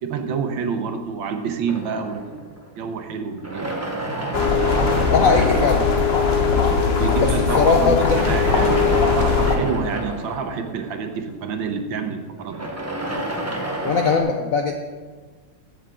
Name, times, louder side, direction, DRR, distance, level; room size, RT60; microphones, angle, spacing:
voice 1, 0.0-3.8 6.9-12.7, right 5 dB, 70° right, 6 dB, 1.6 m, -28 dB
sound 1, 1.7-2.9 3.4-6.5 7.9-11.3 12.4-14.2, right 1 dB, 20° right, 0.4 m, -30 dB
sound 2, 4.3-9.6, left 5 dB, 40° left, 1.0 m, -19 dB
voice 2, 5.1-5.8 7.6-8.2 13.8-14.7, left 5 dB, 70° left, 4 dB, 0.8 m, -19 dB
15.0 x 7.0 x 3.7 m, 1.4 s
omnidirectional pair, 2.2 m